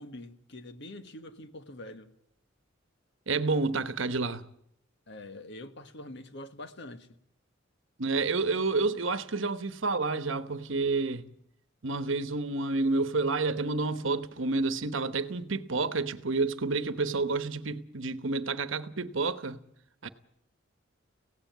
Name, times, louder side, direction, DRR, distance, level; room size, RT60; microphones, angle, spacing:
voice 1, 0.0-2.1 5.1-7.2, left 1 dB, 60° left, 1.4 m, -45 dB
voice 2, 3.3-4.5 8.0-11.3 11.8-19.6 20.0-20.1, right 3 dB, 70° right, 1.1 m, -29 dB
17.0 x 16.5 x 9.3 m
head